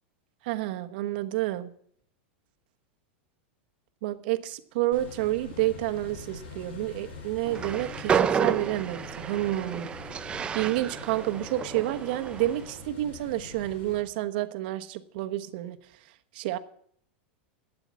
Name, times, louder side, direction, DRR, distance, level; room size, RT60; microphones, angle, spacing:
voice 1, 0.4-1.7 4.0-10.0 10.5-15.8 16.3-16.6, right 15 dB, 60° right, 8 dB, 1.1 m, -29 dB
sound 1, 4.9-14.0, left 3 dB, 85° left, 6.4 m, -44 dB
Train, 7.5-12.7, right 7 dB, 15° right, 0.5 m, -31 dB
12.5 x 9.0 x 7.2 m, 0.63 s
supercardioid pair, 155°, 6 cm